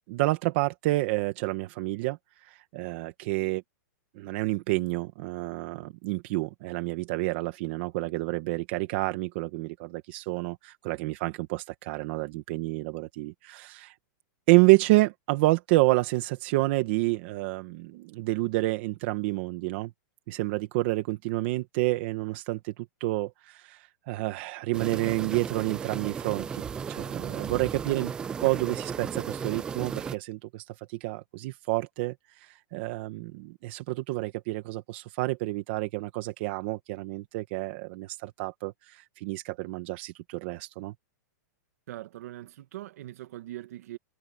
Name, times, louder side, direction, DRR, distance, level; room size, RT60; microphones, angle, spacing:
voice 1, 0.1-3.6 4.2-14.0 14.5-19.9 20.3-28.1 28.4-40.9, right 20 dB, 35° right, 1.4 m, -29 dB
sound 1, 24.7-30.2, right 6 dB, 10° right, 0.3 m, -35 dB
voice 2, 41.9-44.0, right 14 dB, 50° right, 2.0 m, -41 dB
supercardioid pair, 170°, 10 cm